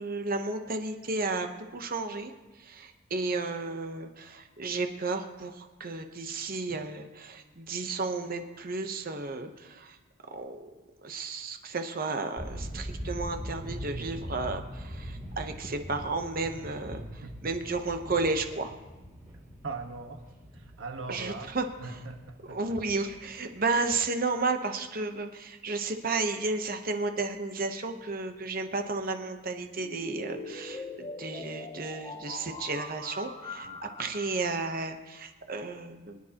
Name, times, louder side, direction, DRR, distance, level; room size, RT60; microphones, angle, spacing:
voice 1, 0.0-10.0 10.3-10.7 11.0-18.7 21.1-22.0 22.5-36.2, right 3 dB, 40° right, 6 dB, 0.9 m, -33 dB
sound 1, 12.4-23.9, equal, 15° right, 2.8 m, -42 dB
voice 2, 19.6-20.2 20.5-22.6 33.6-33.8, right 3 dB, 65° right, 4 dB, 1.3 m, -40 dB
sound 2, 29.8-34.8, left 2 dB, 20° left, 0.7 m, -42 dB
24.0 x 10.0 x 2.9 m, 1.2 s
head